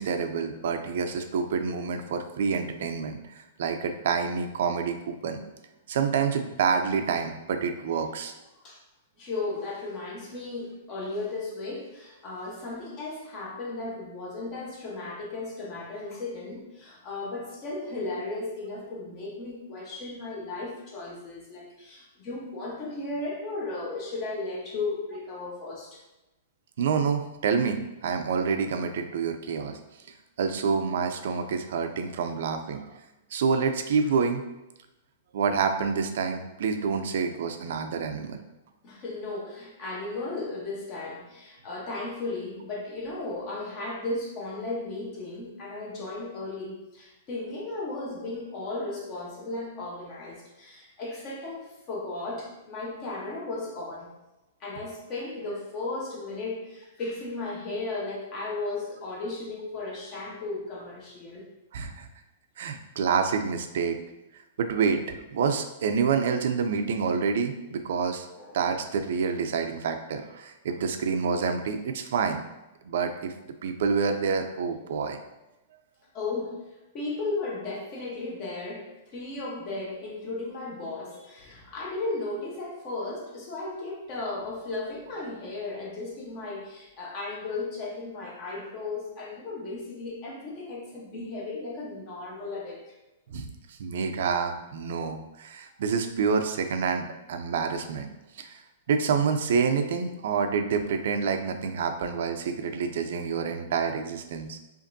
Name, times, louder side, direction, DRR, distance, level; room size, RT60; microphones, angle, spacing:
voice 1, 0.0-5.4 5.9-8.3 26.8-29.8 30.4-32.9 33.3-34.4 35.3-38.4 61.7-62.1 62.6-64.0 64.6-68.3 68.5-72.4 72.8-73.3 73.6-75.2 93.3-93.5 93.8-98.1 98.4-98.6 98.9-104.6, right 5 dB, 65° right, 6 dB, 0.4 m, -27 dB
voice 2, 9.2-26.0 38.8-54.1 54.6-61.5 68.3-68.6 76.1-76.7 76.9-92.8, left 2 dB, 30° left, -3 dB, 1.0 m, -35 dB
5.0 x 2.6 x 2.6 m, 1.0 s
hypercardioid pair, 160°, 0 cm